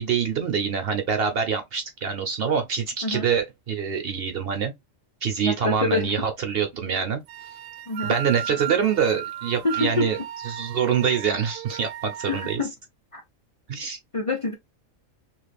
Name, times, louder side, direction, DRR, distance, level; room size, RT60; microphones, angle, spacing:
voice 1, 0.0-4.7 5.2-7.2 8.0-10.2 10.4-12.6 13.7-14.0, right 7 dB, 55° right, 0.8 m, -25 dB
voice 2, 5.4-6.1 7.9-8.2 9.6-10.1 12.2-12.7 13.1-13.2 14.1-14.5, left 3 dB, 30° left, 0.7 m, -26 dB
sound 1, 7.3-12.6, right 11 dB, 85° right, 1.0 m, -36 dB
3.3 x 3.1 x 2.3 m
omnidirectional pair, 1.3 m